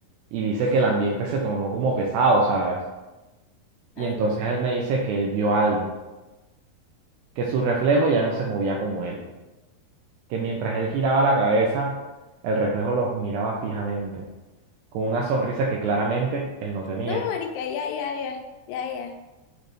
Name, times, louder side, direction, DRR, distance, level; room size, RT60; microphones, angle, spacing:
voice 1, 0.3-2.8 4.0-5.9 7.4-9.2 10.3-12.0 12.4-14.2 14.9-17.2, right 3 dB, 85° right, -1 dB, 2.1 m, -24 dB
voice 2, 4.0-4.5 17.0-18.4 18.7-19.2, left 7 dB, 85° left, 5 dB, 2.6 m, -31 dB
6.8 x 2.5 x 3.1 m, 1.1 s
omnidirectional pair, 4.6 m